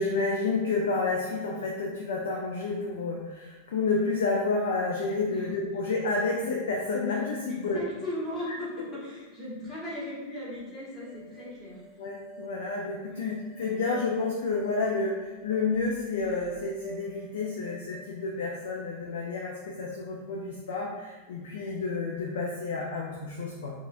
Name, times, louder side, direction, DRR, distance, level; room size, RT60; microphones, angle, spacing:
voice 1, 0.0-7.8 12.0-23.7, left 3 dB, 60° left, -2 dB, 0.4 m, -30 dB
voice 2, 7.5-11.8 13.1-13.3, left 1 dB, 15° left, -9 dB, 1.3 m, -37 dB
sound 1, 11.0-20.2, right 2 dB, 40° right, 0.7 m, -51 dB
3.1 x 2.3 x 2.5 m, 1.2 s
figure-of-eight pair, 90°, 0 cm